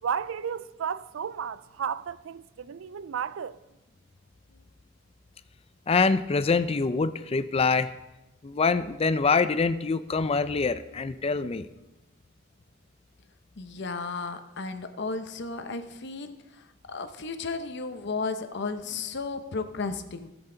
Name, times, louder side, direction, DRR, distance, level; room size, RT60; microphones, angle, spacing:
voice 1, 0.0-3.6, right 7 dB, 75° right, 0.4 m, -33 dB
voice 2, 5.9-7.9 8.4-11.7, left 4 dB, 30° left, 0.4 m, -25 dB
voice 3, 13.6-20.3, left 4 dB, 60° left, 0.9 m, -34 dB
17.0 x 8.0 x 3.9 m
head